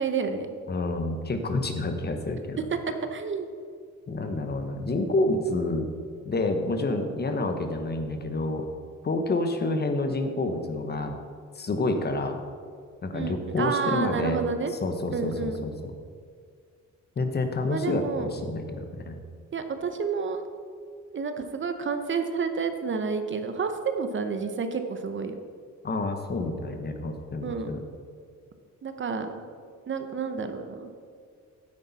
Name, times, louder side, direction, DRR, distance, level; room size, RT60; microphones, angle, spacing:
voice 1, 0.0-0.5 2.9-3.5 13.1-14.7 15.1-15.6 17.7-18.4 19.5-20.5 21.1-25.3 27.4-27.8 28.8-29.4 29.9-30.9, right 5 dB, 40° right, 7 dB, 0.8 m, -30 dB
voice 2, 0.7-2.6 4.1-5.9 6.2-8.7 9.0-11.1 11.5-12.4 13.0-14.4 14.8-15.9 17.2-19.2 25.8-27.8, left 2 dB, 35° left, 6 dB, 1.0 m, -28 dB
9.9 x 8.5 x 4.1 m, 2.1 s
cardioid pair, 90°, 30 cm